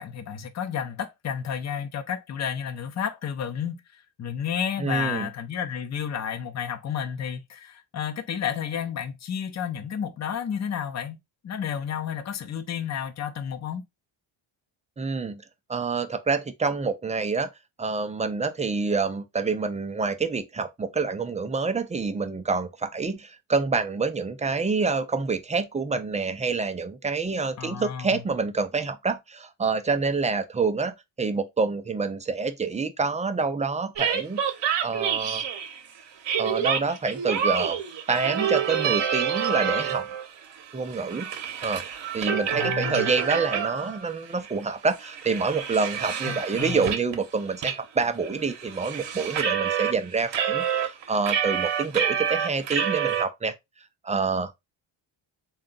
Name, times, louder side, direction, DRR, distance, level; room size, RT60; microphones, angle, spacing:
voice 1, 0.0-3.8 4.2-11.2 11.4-13.8 27.6-28.2 42.5-43.1 46.3-46.9, left 8 dB, 35° left, 0.6 m, -31 dB
voice 2, 4.8-5.3 15.0-15.4 15.7-17.5 17.8-34.4 34.8-35.4 36.4-37.8 38.1-40.1 40.7-41.3 41.6-41.8 42.1-53.6 54.0-54.7, right 4 dB, 15° right, 0.3 m, -27 dB
sound 1, 34.0-35.8 36.2-40.3 40.6-44.1 44.4-44.5 44.9-47.2 47.6-47.8 48.0-49.9 50.3-53.2, right 8 dB, 60° right, 0.9 m, -28 dB
3.7 x 2.3 x 3.8 m
cardioid pair, 115°, 48 cm